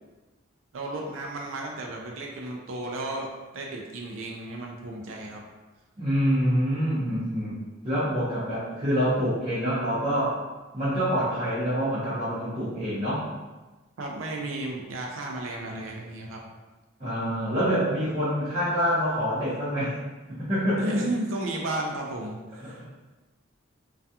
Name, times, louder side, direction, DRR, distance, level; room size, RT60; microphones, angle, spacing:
voice 1, 0.7-3.3 3.5-5.4 14.0-16.4 20.8-22.8, right 1 dB, 70° right, 0 dB, 0.4 m, -33 dB
voice 2, 6.0-7.6 7.8-10.4 10.7-13.3 17.0-20.0 20.3-20.9 22.6-22.8, equal, 25° right, -13 dB, 0.7 m, -26 dB
2.3 x 2.2 x 2.7 m, 1.2 s
head